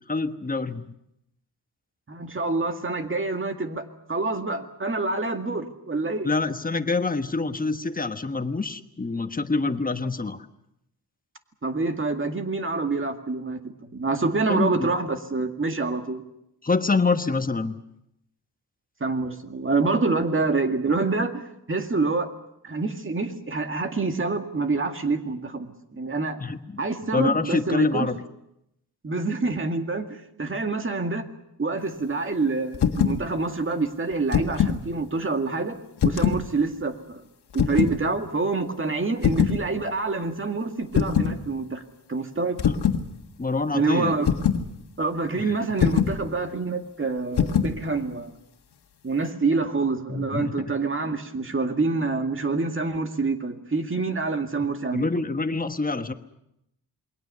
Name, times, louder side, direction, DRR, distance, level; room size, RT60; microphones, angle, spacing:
voice 1, 0.1-0.9 6.2-10.5 14.5-14.9 16.6-17.8 26.4-26.8 27.1-28.2 43.4-44.2 45.4-45.5 50.1-50.6 54.6-56.1, left 3 dB, 20° left, 9 dB, 1.2 m, -26 dB
voice 2, 2.1-6.3 11.6-16.2 19.0-22.3 22.6-26.4 26.8-28.1 29.0-31.2 31.6-37.2 37.5-41.8 42.1-42.6 43.7-44.3 45.0-48.3 49.0-55.1, right 3 dB, 30° right, 6 dB, 2.1 m, -27 dB
sound 1, 32.7-33.2 34.1-34.8 36.0-36.5 37.5-38.0 39.2-39.6 40.9-41.4 42.6-43.0 44.3-44.7 45.8-46.2 47.4-47.8, left 7 dB, 85° left, 1.6 m, -22 dB
28.0 x 21.5 x 6.8 m, 0.81 s
wide cardioid pair, 120°, 38 cm